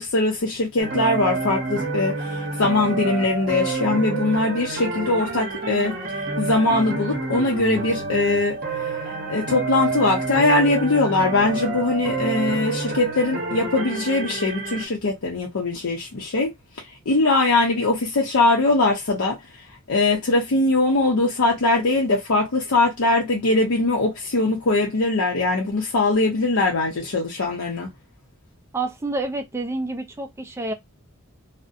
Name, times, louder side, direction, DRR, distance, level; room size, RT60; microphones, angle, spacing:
voice 1, 0.0-8.9 9.3-16.5 17.1-19.4 19.9-27.9, left 2 dB, 70° left, 0.6 m, -21 dB
sound 1, 0.8-14.9, right 3 dB, 40° right, 0.8 m, -28 dB
voice 2, 28.7-30.7, right 2 dB, 10° right, 0.3 m, -28 dB
2.6 x 2.0 x 2.4 m
head